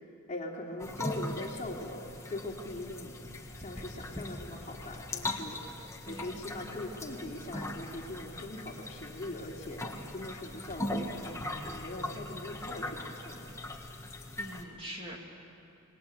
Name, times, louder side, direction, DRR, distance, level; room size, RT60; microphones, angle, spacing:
voice 1, 0.3-3.1 3.6-5.6 6.1-13.6, left 1 dB, 35° left, -1 dB, 2.8 m, -41 dB
sound 1, 0.8-14.6, left 1 dB, 15° left, 1.4 m, -40 dB
voice 2, 6.0-6.4 14.4-15.2, right 1 dB, 25° right, 0 dB, 2.6 m, -43 dB
27.5 x 20.5 x 7.8 m, 2.9 s
head